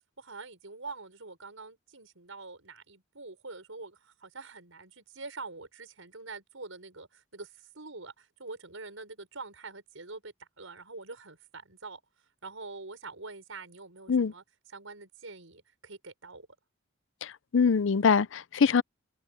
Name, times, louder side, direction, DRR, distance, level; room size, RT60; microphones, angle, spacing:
voice 1, 0.2-12.0 12.4-14.4 14.7-16.5, right 3 dB, 85° right, 5.0 m, -45 dB
voice 2, 17.2-18.8, left 5 dB, 65° left, 0.5 m, -24 dB
head